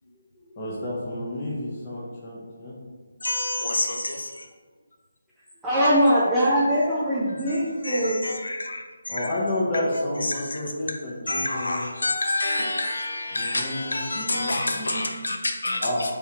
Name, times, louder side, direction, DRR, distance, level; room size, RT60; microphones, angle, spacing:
voice 1, 0.6-2.8 9.1-11.9 13.3-15.0 15.8-16.1, left 1 dB, 30° left, -6 dB, 0.8 m, -30 dB
voice 2, 3.2-4.5 7.5-9.4 10.2-10.6 11.3-16.1, left 2 dB, 65° left, 3 dB, 0.5 m, -28 dB
voice 3, 5.6-8.3, equal, 5° right, -10 dB, 0.5 m, -21 dB
3.4 x 3.4 x 2.9 m, 1.4 s
figure-of-eight pair, 150°, 0 cm